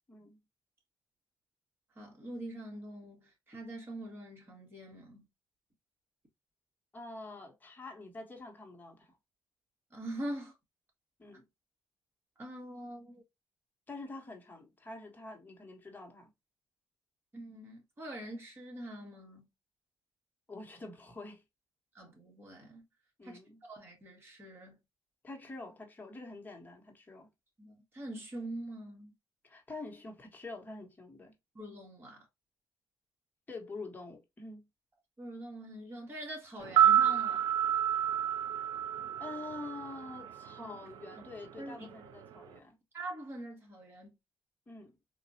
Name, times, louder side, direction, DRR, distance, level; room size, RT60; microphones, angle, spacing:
voice 1, 0.1-0.4 6.9-9.2 11.2-11.5 13.9-16.3 20.5-21.4 23.2-23.6 25.2-27.3 29.4-31.3 33.5-34.7 39.2-42.8 44.7-44.9, left 3 dB, 25° left, 1.3 m, -46 dB
voice 2, 2.0-5.3 9.9-10.5 12.4-13.2 17.3-19.5 21.9-22.8 23.2-24.8 27.6-29.1 31.5-32.3 35.2-37.5 40.6-40.7 41.6-42.0 42.9-44.1, right 1 dB, 30° right, 1.9 m, -44 dB
sound 1, 36.6-40.8 41.0-41.2, right 10 dB, 85° right, 0.4 m, -29 dB
4.2 x 2.5 x 2.7 m
cardioid pair, 105°, 8 cm